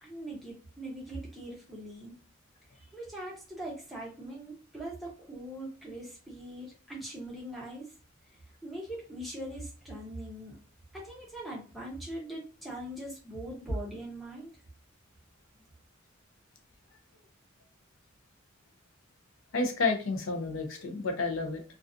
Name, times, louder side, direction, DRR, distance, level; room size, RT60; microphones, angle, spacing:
voice 1, 0.0-2.1 2.9-7.9 8.6-10.6 10.9-14.5, right 1 dB, ahead, -5 dB, 0.9 m, -41 dB
voice 2, 19.5-21.6, left 3 dB, 70° left, 4 dB, 0.6 m, -30 dB
2.4 x 2.3 x 2.5 m, 0.36 s
head